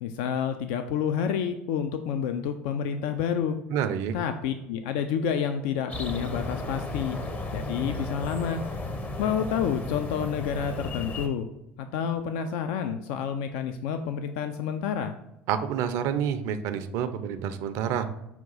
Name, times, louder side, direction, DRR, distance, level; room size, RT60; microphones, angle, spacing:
voice 1, 0.0-3.6 4.1-7.2 7.5-8.6 9.2-11.5 11.8-15.1, left 7 dB, 65° left, 7 dB, 0.3 m, -29 dB
voice 2, 3.7-4.1 15.5-18.1, right 8 dB, 60° right, 9 dB, 0.4 m, -28 dB
sound 1, 5.9-11.3, left 2 dB, 25° left, 0.6 m, -34 dB
5.7 x 2.3 x 3.9 m, 0.90 s
hypercardioid pair, 75°, 6 cm